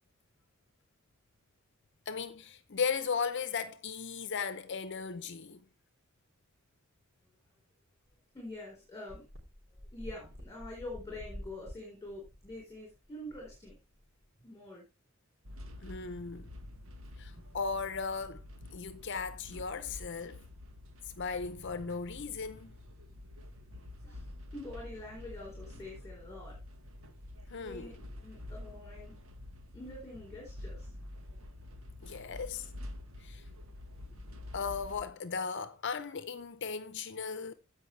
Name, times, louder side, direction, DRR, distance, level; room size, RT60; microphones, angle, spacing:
voice 1, 2.1-5.6 15.8-16.5 17.2-18.4 18.7-20.4 21.0-22.8 27.5-27.9 32.0-32.7 33.2-33.4 34.5-37.5, left 5 dB, 60° left, 0.7 m, -37 dB
sound 1, 8.1-8.2 8.4-8.5 9.1-14.3, equal, 55° right, 3.6 m, -49 dB
voice 2, 8.3-9.2 9.7-13.7 14.4-14.9 24.0-26.6 27.6-27.9 28.2-29.1 29.7-30.9, left 2 dB, 15° left, 4.0 m, -46 dB
sound 2, 15.4-35.0, left 1 dB, 75° right, 1.6 m, -48 dB
15.5 x 5.5 x 3.2 m
head